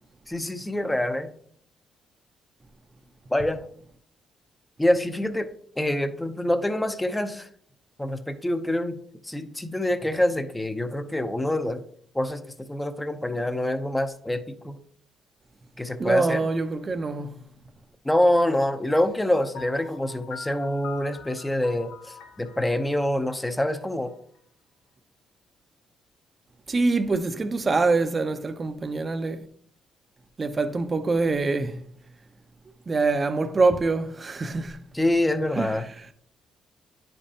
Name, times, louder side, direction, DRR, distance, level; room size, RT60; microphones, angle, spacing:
voice 1, 0.3-1.3 3.3-3.6 4.8-5.5 5.8-7.5 8.0-9.0 9.2-11.8 12.1-14.8 15.8-16.5 18.0-24.1 34.9-35.8, left 1 dB, 10° left, 0.7 m, -26 dB
voice 2, 16.0-17.4 26.7-29.4 30.4-31.8 32.9-34.8 35.6-36.1, right 3 dB, 30° right, 0.7 m, -25 dB
Piano, 19.5-24.4, left 7 dB, 90° left, 0.8 m, -45 dB
9.5 x 5.3 x 2.8 m
cardioid pair, 90°, 0 cm